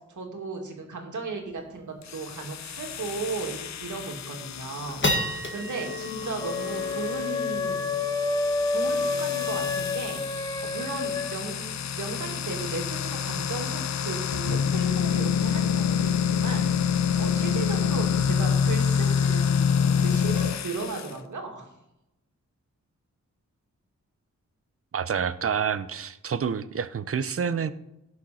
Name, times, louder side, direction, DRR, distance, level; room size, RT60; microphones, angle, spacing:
voice 1, 0.1-5.1 5.5-8.1 8.7-16.7 17.2-21.7, right 3 dB, 85° right, 1 dB, 2.3 m, -36 dB
sound 1, 1.5-1.6 1.9-2.0 2.4-2.6 3.1-3.2 3.8-4.1 4.5-11.1, left 1 dB, 40° left, 1.8 m, -34 dB
sound 2, 2.0-21.1, left 7 dB, 65° left, 0.6 m, -28 dB
sound 3, 6.4-11.4, left 4 dB, 15° left, 0.7 m, -29 dB
voice 2, 24.9-27.7, right 7 dB, 50° right, 14 dB, 0.6 m, -28 dB
16.5 x 6.4 x 4.3 m, 0.89 s
wide cardioid pair, 110°, 30 cm